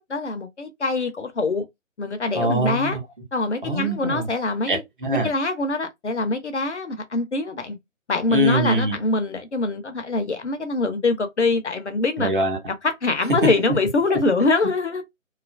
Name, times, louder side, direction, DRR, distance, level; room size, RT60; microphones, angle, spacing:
voice 1, 0.1-1.6 2.0-3.0 3.3-4.8 5.2-7.8 8.1-12.3 12.8-15.0, left 3 dB, 60° left, 0.7 m, -24 dB
voice 2, 2.3-3.0 3.6-4.3 4.6-5.3 8.3-9.0 12.2-12.7 14.1-14.2, right 1 dB, 40° right, 0.9 m, -23 dB
2.8 x 2.4 x 2.3 m
figure-of-eight pair, 150°, 40 cm